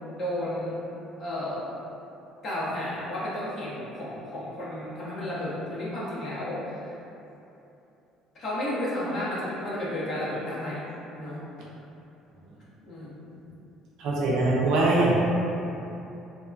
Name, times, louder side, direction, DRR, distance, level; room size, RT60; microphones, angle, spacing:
voice 1, 0.1-0.8 1.2-1.7 2.4-6.9 8.3-10.9 11.2-11.4 12.8-13.4, left 1 dB, 55° left, -8 dB, 0.9 m, -32 dB
voice 2, 14.0-15.2, right 2 dB, 70° right, -5 dB, 0.5 m, -22 dB
2.8 x 2.1 x 2.4 m, 2.9 s
supercardioid pair, 70°, 0 cm